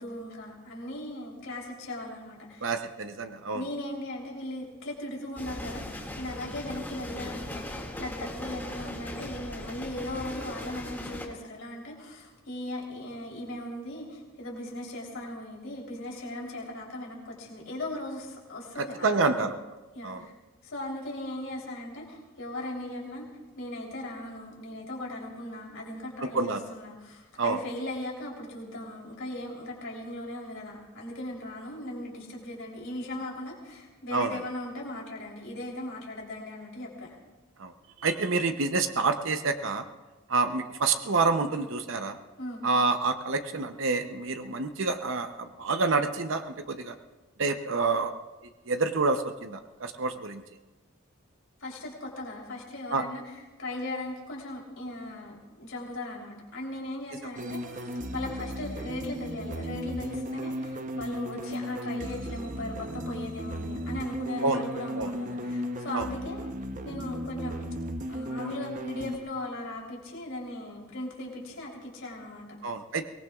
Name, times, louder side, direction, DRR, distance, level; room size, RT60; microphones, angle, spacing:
voice 1, 0.0-2.7 3.5-19.5 19.9-20.3 20.6-23.3 23.6-37.1 42.4-42.7 51.6-66.5 66.8-67.6 68.1-72.6, left 1 dB, 75° left, -2 dB, 3.5 m, -38 dB
voice 2, 2.6-3.6 18.8-19.6 20.0-20.2 26.2-26.6 27.4-27.6 34.1-34.4 37.6-37.7 38.0-39.8 40.3-42.2 42.6-47.0 47.4-48.1 48.7-50.4 52.9-53.1 64.4-64.6 65.0-65.1 65.9-66.1 72.6-73.1, right 3 dB, 70° right, 7 dB, 0.8 m, -28 dB
sound 1, 5.4-11.3, left 1 dB, 10° left, 2.1 m, -39 dB
sound 2, 57.4-69.2, equal, 40° right, 0.9 m, -35 dB
23.5 x 19.5 x 2.4 m, 1.2 s
head